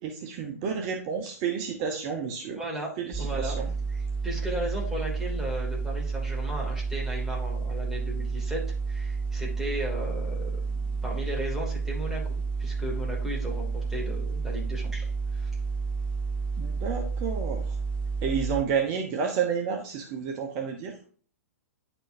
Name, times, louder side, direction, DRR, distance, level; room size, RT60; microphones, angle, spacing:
voice 1, 0.0-2.6 3.0-3.7 16.6-17.8 18.2-21.0, right 6 dB, 40° right, 3 dB, 1.0 m, -30 dB
voice 2, 2.5-2.9 3.2-8.6 8.9-15.5, equal, 5° right, -3 dB, 2.6 m, -36 dB
sound 1, 3.1-18.6, right 4 dB, 15° left, 0.8 m, -30 dB
10.0 x 4.4 x 2.7 m, 0.43 s
hypercardioid pair, 110°, 8 cm